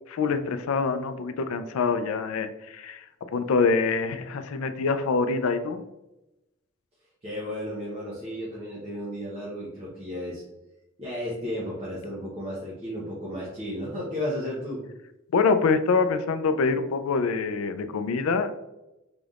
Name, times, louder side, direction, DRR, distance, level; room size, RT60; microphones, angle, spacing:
voice 1, 0.1-3.0 3.3-5.8 15.3-18.5, left 4 dB, 85° left, 10 dB, 0.4 m, -25 dB
voice 2, 7.2-10.4 11.0-14.8, equal, 30° right, -6 dB, 0.8 m, -33 dB
3.9 x 3.4 x 2.4 m, 0.95 s
head